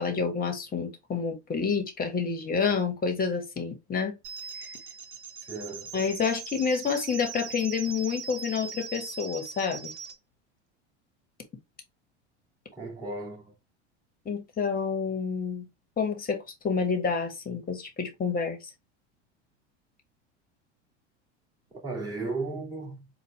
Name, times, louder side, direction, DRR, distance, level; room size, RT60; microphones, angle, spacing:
voice 1, 0.0-4.1 5.9-9.9 14.2-15.7 16.0-18.7, left 5 dB, 25° left, 1.2 m, -29 dB
sound 1, 4.2-10.2, right 6 dB, 80° right, 0.8 m, -40 dB
voice 2, 5.4-6.0 12.7-13.5 21.7-23.2, right 3 dB, 10° right, 2.3 m, -36 dB
4.2 x 2.4 x 3.2 m
hypercardioid pair, 90°, 34 cm